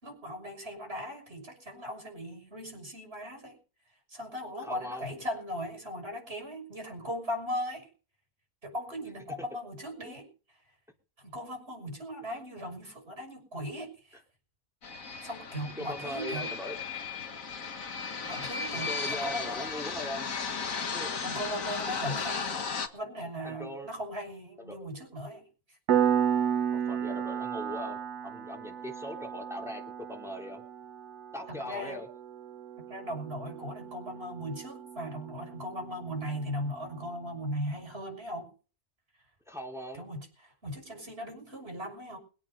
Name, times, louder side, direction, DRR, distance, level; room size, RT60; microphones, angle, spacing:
voice 1, 0.0-3.6 4.1-7.9 8.6-10.3 11.2-14.2 15.2-16.5 18.2-19.8 21.2-22.6 22.9-25.8 31.5-32.0 32.8-38.5 39.9-42.2, equal, 40° right, 5 dB, 6.5 m, -38 dB
voice 2, 4.6-5.1 10.0-10.2 15.8-16.7 18.7-20.3 20.9-21.1 23.4-23.9 24.6-24.8 26.7-30.6 31.3-32.1 39.5-40.0, left 1 dB, ahead, 1 dB, 3.3 m, -40 dB
sound 1, 14.8-22.9, left 5 dB, 60° left, 2.0 m, -35 dB
Piano, 25.9-36.3, right 8 dB, 85° right, 1.5 m, -33 dB
23.5 x 8.6 x 5.4 m, 0.38 s
omnidirectional pair, 1.6 m